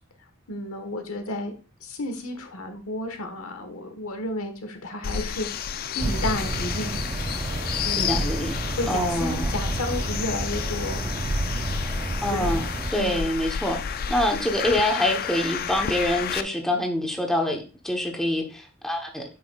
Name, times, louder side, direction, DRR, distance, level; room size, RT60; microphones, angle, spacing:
voice 1, 0.5-1.5 1.8-7.1 7.8-8.3 8.7-11.0 12.3-12.6 13.0-13.3, left 1 dB, 85° left, 6 dB, 1.3 m, -32 dB
sound 1, 5.0-16.4, left 8 dB, 45° left, 0.4 m, -31 dB
sound 2, 6.0-12.9, right 2 dB, 25° right, 0.4 m, -30 dB
voice 2, 8.0-8.5 8.9-9.5 12.2-13.8 14.1-19.2, left 1 dB, ahead, 2 dB, 0.9 m, -26 dB
8.5 x 6.0 x 2.3 m, 0.34 s
head